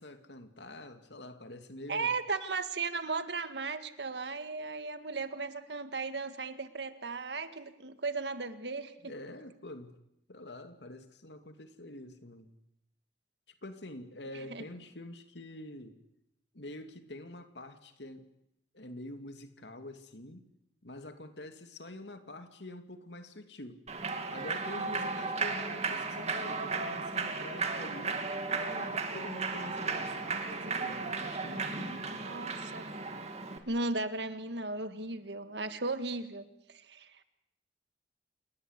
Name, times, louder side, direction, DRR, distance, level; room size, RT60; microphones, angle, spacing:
voice 1, 0.0-2.1 9.0-9.9 10.3-12.5 13.6-16.0 16.5-18.3 18.7-20.5 20.8-23.8 24.3-28.3 28.5-32.3, left 1 dB, 80° left, 8 dB, 2.5 m, -46 dB
voice 2, 1.9-9.1 14.5-14.6 32.2-32.9 33.7-37.2, right 3 dB, 75° right, 10 dB, 1.9 m, -36 dB
Human voice / Clapping / Cheering, 23.9-33.6, right 4 dB, 40° right, 2.6 m, -35 dB
27.5 x 19.5 x 8.3 m, 0.81 s
head